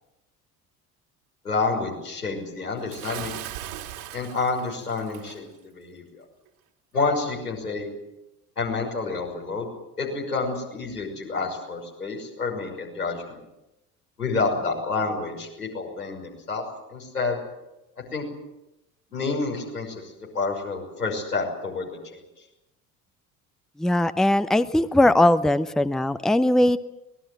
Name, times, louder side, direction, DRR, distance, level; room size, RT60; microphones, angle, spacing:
voice 1, 1.4-3.4 4.1-6.0 6.9-7.9 8.6-9.7 10.0-13.4 14.2-17.4 18.1-18.2 19.1-22.2, left 3 dB, 85° left, -1 dB, 6.1 m, -29 dB
Bathtub (filling or washing) / Splash splatter, 2.9-5.4, right 12 dB, 65° right, 2.8 m, -38 dB
voice 2, 23.8-26.8, left 1 dB, ahead, 13 dB, 0.9 m, -20 dB
25.0 x 20.0 x 7.8 m, 0.94 s
figure-of-eight pair, 60°, 45 cm